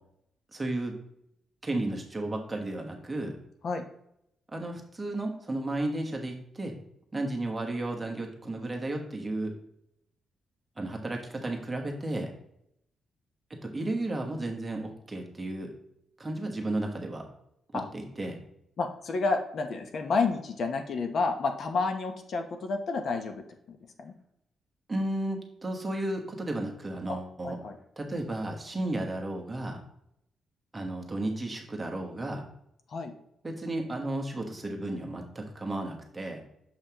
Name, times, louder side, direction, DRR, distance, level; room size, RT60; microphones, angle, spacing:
voice 1, 0.5-0.9 1.6-3.4 4.5-6.7 7.1-9.5 10.8-12.3 13.6-15.7 16.2-17.2 17.7-18.4 24.9-27.6 28.0-29.8 30.7-32.4 33.4-36.4, right 2 dB, 15° right, 1 dB, 1.1 m, -33 dB
voice 2, 18.8-24.1 27.1-27.2 27.4-27.8 32.9-33.1, left 4 dB, 55° left, 5 dB, 0.8 m, -30 dB
6.8 x 5.6 x 2.9 m, 0.76 s
cardioid pair, 140°, 0 cm